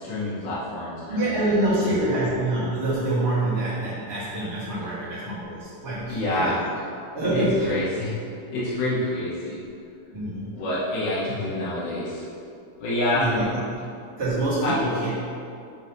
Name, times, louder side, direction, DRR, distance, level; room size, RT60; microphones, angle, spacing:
voice 1, 0.0-1.5 1.8-1.9 6.1-6.6 7.3-8.2 8.5-9.6 10.5-12.2 12.8-13.5 14.6-14.8, left 1 dB, 80° left, -9 dB, 3.9 m, -27 dB
voice 2, 1.1-6.5 7.1-7.7 10.1-10.5 13.1-13.4 13.8-13.9 14.2-15.1, right 1 dB, 50° right, -11 dB, 1.8 m, -25 dB
7.7 x 3.1 x 5.4 m, 2.5 s
omnidirectional pair, 5.0 m